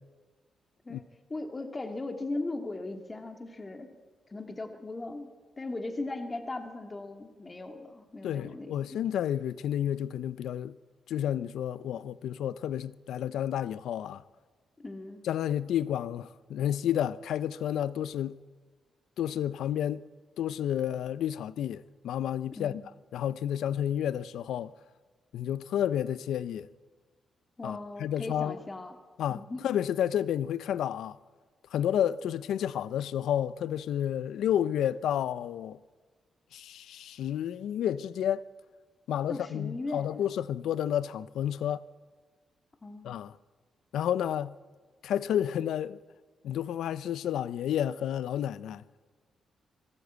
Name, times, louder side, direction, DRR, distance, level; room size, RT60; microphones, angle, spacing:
voice 1, 1.3-3.9 4.3-5.3 5.6-8.7 14.8-15.2 22.5-22.8 27.6-29.0 29.3-29.7 39.3-40.2 42.8-43.2, left 2 dB, 25° left, 2.3 m, -38 dB
voice 2, 8.2-10.8 11.1-14.2 15.2-18.4 19.2-20.1 20.4-22.8 23.1-24.7 25.3-26.7 27.6-28.6 29.2-31.2 31.7-35.8 36.5-38.5 39.1-41.9 43.0-43.4 43.9-44.6 45.0-46.0 46.4-48.8, left 10 dB, 90° left, 0.6 m, -31 dB
25.5 x 18.0 x 8.2 m
cardioid pair, 115°, 0 cm